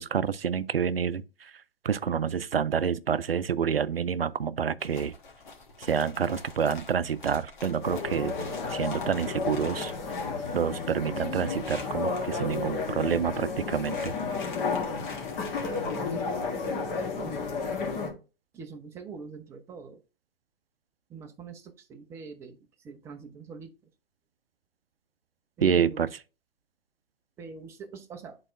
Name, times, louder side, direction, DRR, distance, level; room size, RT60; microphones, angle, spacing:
voice 1, 0.0-1.5 1.8-5.2 5.8-8.4 8.7-9.9 10.5-14.1 25.6-26.2, right 7 dB, 80° right, 0.5 m, -28 dB
sound 1, 4.8-12.2 12.5-13.2 13.5-16.0, left 4 dB, 55° left, 1.6 m, -46 dB
sound 2, 7.8-18.1, left 4 dB, 30° left, 1.3 m, -32 dB
voice 2, 15.7-17.6 18.5-20.0 21.1-22.6 22.8-23.7 25.6-26.0 27.4-28.4, right 5 dB, 10° right, 0.5 m, -44 dB
11.0 x 3.9 x 2.5 m
figure-of-eight pair, 110°, 29 cm